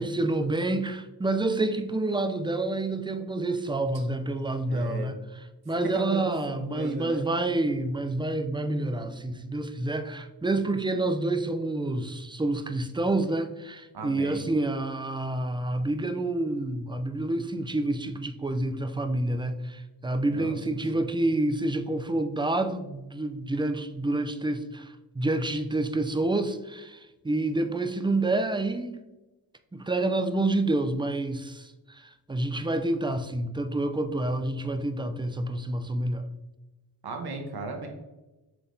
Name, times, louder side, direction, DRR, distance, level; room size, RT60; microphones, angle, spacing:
voice 1, 0.0-5.1 5.7-29.0 29.7-36.3, right 2 dB, 10° right, 0.4 m, -28 dB
voice 2, 4.7-5.1 5.9-7.2 13.9-14.4 20.3-21.0 37.0-37.9, right 3 dB, 55° right, 1.1 m, -36 dB
5.8 x 3.4 x 2.7 m
cardioid pair, 45°, 45 cm